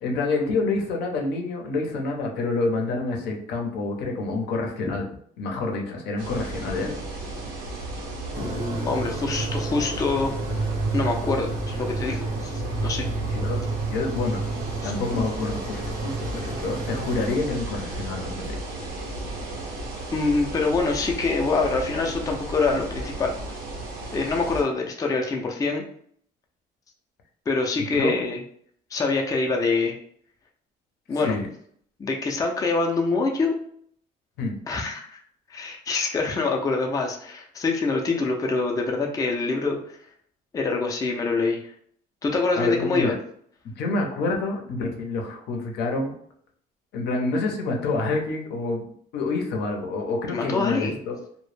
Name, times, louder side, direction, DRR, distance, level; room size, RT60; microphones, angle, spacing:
voice 1, 0.0-5.1 5.4-7.0 13.3-13.6 13.9-14.4 14.8-18.6 27.8-28.1 31.2-31.5 34.4-34.6 42.5-43.2 43.6-46.1 46.9-48.8 49.1-51.2, left 3 dB, 75° left, 2 dB, 0.6 m, -27 dB
sound 1, 6.2-24.6, right 2 dB, 85° right, 0.8 m, -34 dB
sound 2, 8.3-17.4, right 3 dB, 50° right, 0.6 m, -31 dB
voice 2, 8.4-10.3 10.9-13.1 14.8-14.9 20.1-23.3 24.1-25.8 27.5-28.4 28.9-29.9 31.1-31.4 32.0-33.5 34.7-35.2 35.5-40.0 40.5-41.7 42.2-43.1 50.3-51.0, left 3 dB, 20° left, 1 dB, 0.4 m, -25 dB
2.1 x 2.0 x 3.1 m, 0.63 s
cardioid pair, 110°, 17 cm